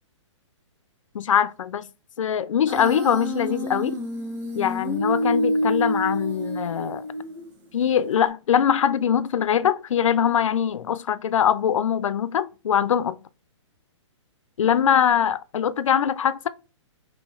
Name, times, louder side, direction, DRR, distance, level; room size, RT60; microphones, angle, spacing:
voice 1, 1.1-1.9 2.2-4.0 4.5-7.0 7.7-13.2 14.6-16.5, left 8 dB, 80° left, 0.6 m, -22 dB
Human voice, 2.7-7.6, equal, 15° right, 1.2 m, -27 dB
5.5 x 2.8 x 3.1 m
hypercardioid pair, 160°, 16 cm